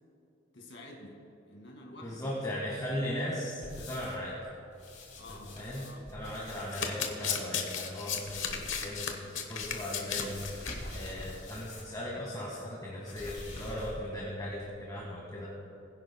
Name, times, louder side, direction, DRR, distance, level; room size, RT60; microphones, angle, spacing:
voice 1, 0.5-1.2 1.5-2.3 5.2-6.4, left 1 dB, 70° left, 0 dB, 2.2 m, -50 dB
voice 2, 2.0-4.3 5.5-9.1 9.5-10.4 10.9-15.5, left 1 dB, 20° left, -5 dB, 1.7 m, -37 dB
sound 1, 3.6-4.3 4.7-7.0 8.0-9.1 9.6-12.0 12.2-12.3 13.0-14.1 14.6-14.7, left 1 dB, 40° left, 2.6 m, -45 dB
Domestic sounds home sounds, 6.6-10.7 11.1-11.2 11.5-11.6, left 7 dB, 90° left, 1.2 m, -35 dB
21.5 x 10.5 x 2.3 m, 2.9 s
head